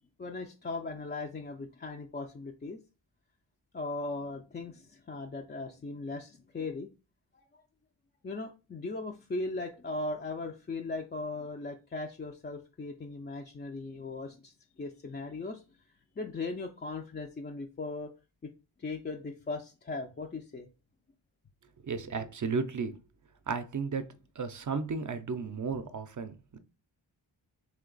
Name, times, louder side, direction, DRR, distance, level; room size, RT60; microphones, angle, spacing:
voice 1, 0.2-2.8 3.7-6.9 7.3-7.6 8.2-15.6 16.2-18.1 18.4-18.5 18.8-20.7, left 3 dB, 25° left, 3 dB, 0.3 m, -38 dB
voice 2, 21.8-22.9 23.5-24.1 24.4-26.6, right 5 dB, 40° right, 11 dB, 0.5 m, -34 dB
3.3 x 2.8 x 3.8 m, 0.32 s
wide cardioid pair, 70°, 48 cm